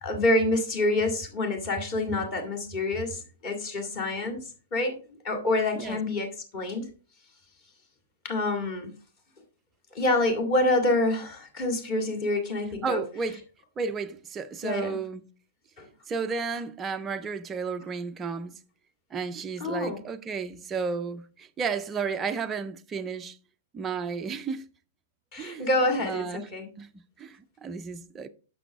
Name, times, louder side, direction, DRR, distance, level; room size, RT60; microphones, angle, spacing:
voice 1, 0.0-5.0 5.2-6.9 8.2-8.9 9.9-13.0 14.6-14.9 15.8-15.9 19.6-20.0 25.3-26.7, left 2 dB, 25° left, 2.1 m, -27 dB
voice 2, 12.8-13.4 13.8-15.3 16.1-18.6 19.1-23.4 23.7-24.7 25.4-25.7 26.0-26.5 26.8-26.9 27.2-28.3, right 5 dB, 10° right, 0.4 m, -33 dB
10.0 x 6.1 x 3.4 m
hypercardioid pair, 175°, 0 cm